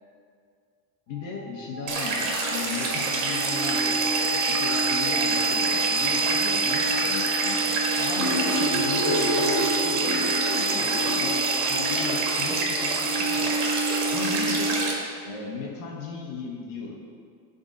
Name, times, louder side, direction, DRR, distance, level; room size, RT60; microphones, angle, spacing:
voice 1, 1.1-13.6 14.1-14.8 15.2-17.1, left 5 dB, 60° left, -2 dB, 1.4 m, -36 dB
sound 1, 1.2-15.1, right 3 dB, 30° right, 1.4 m, -28 dB
sound 2, 1.9-14.9, right 3 dB, 60° right, 1.8 m, -28 dB
sound 3, 8.2-13.1, equal, 5° right, 1.4 m, -31 dB
11.5 x 4.0 x 3.9 m, 2.1 s
supercardioid pair, 145°, 48 cm